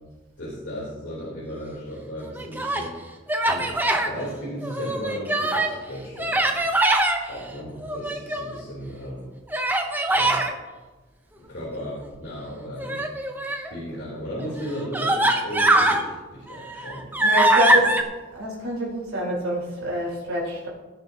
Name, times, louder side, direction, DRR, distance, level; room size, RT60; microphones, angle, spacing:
voice 1, 0.4-6.6 7.3-9.3 10.1-10.4 11.3-17.0 17.7-17.9, equal, 60° left, -7 dB, 3.5 m, -35 dB
Human voice, 2.3-2.9 3.3-4.1 4.6-5.8 6.2-7.2 7.8-8.6 9.5-10.5 12.8-13.7 14.4-14.5 14.9-16.0 16.5-18.0, right 1 dB, 10° right, 0.7 m, -22 dB
voice 2, 17.2-17.9 18.3-20.7, equal, 85° right, -4 dB, 4.3 m, -27 dB
18.0 x 9.7 x 2.9 m, 1.2 s
head